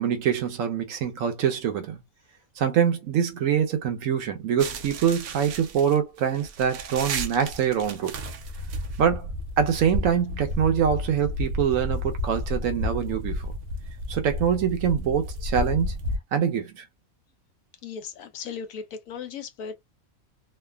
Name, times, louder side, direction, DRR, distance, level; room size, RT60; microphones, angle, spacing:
voice 1, 0.0-2.0 2.6-8.2 9.0-9.3 9.6-13.5 14.1-15.9 16.3-16.8, right 8 dB, 70° right, 1.0 m, -24 dB
sound 1, 4.6-16.2, left 1 dB, 90° right, 1.1 m, -32 dB
voice 2, 17.8-19.7, left 6 dB, 75° left, 1.1 m, -37 dB
3.2 x 2.2 x 2.2 m
omnidirectional pair, 1.5 m